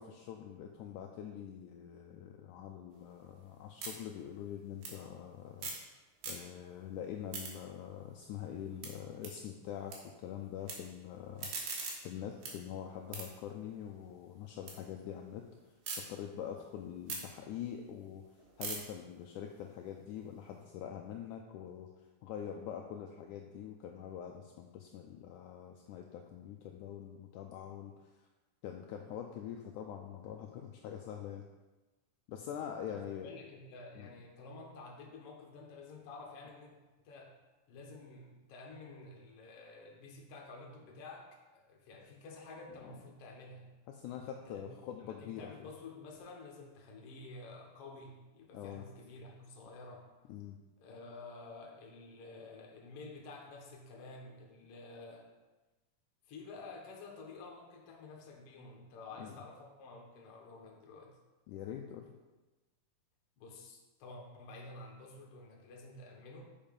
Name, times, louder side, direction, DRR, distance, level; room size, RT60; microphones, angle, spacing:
voice 1, 0.0-5.7 6.3-11.8 12.0-15.4 16.0-18.2 18.6-21.9 22.2-28.3 28.6-31.4 32.3-33.3 34.0-34.1 42.7-42.8 43.9-45.7 48.5-48.8 50.3-50.6 59.2-59.4 61.5-62.1, left 9 dB, 80° left, 2 dB, 1.9 m, -44 dB
sound 1, 2.9-5.9 6.1-6.8 7.1-10.0 10.3-10.7 11.2-14.8 15.1-16.0 16.4-20.6, right 4 dB, 85° right, 3.1 m, -45 dB
voice 2, 32.9-36.8 37.0-37.4 37.7-43.7 44.3-50.1 50.8-55.3 56.3-61.2 63.4-66.5, left 3 dB, 60° left, 0 dB, 1.8 m, -50 dB
7.2 x 5.5 x 5.2 m, 1.1 s
omnidirectional pair, 3.8 m